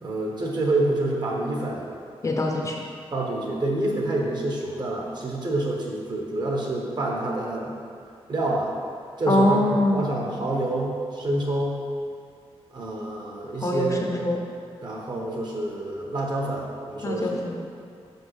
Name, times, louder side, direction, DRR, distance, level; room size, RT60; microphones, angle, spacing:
voice 1, 0.0-1.8 3.1-7.7 8.3-8.7 9.2-11.8 12.7-14.2 14.8-17.3, right 2 dB, 45° right, -1 dB, 1.1 m, -27 dB
voice 2, 2.2-2.8 9.3-10.0 13.6-14.4 17.0-17.5, left 1 dB, 30° left, 0 dB, 0.7 m, -23 dB
5.7 x 5.3 x 6.3 m, 2.2 s
wide cardioid pair, 180°, 11 cm